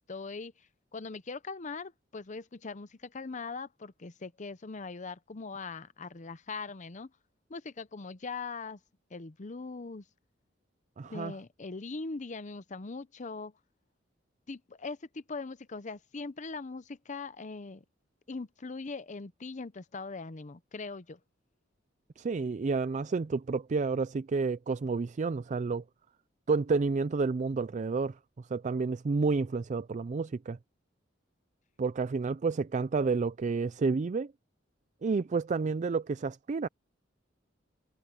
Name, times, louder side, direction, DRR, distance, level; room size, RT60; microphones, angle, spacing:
voice 1, 0.1-0.5 0.9-7.1 7.5-8.8 9.1-10.0 11.0-13.5 14.5-17.8 18.3-21.2, left 4 dB, 40° left, 0.7 m, -41 dB
voice 2, 11.0-11.3 22.2-25.8 26.5-30.6 31.8-34.3 35.0-36.7, right 4 dB, 40° right, 0.4 m, -30 dB
head